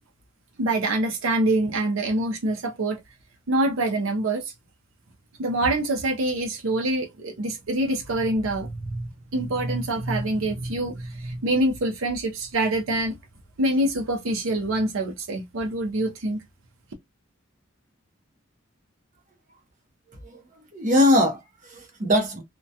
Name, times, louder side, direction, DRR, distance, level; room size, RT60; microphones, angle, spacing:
voice 1, 0.6-3.0 3.5-4.5 5.4-13.2 13.6-16.4, right 1 dB, 85° right, 0.5 m, -25 dB
voice 2, 20.7-22.4, left 1 dB, 40° right, 0.7 m, -21 dB
2.2 x 2.1 x 2.6 m
head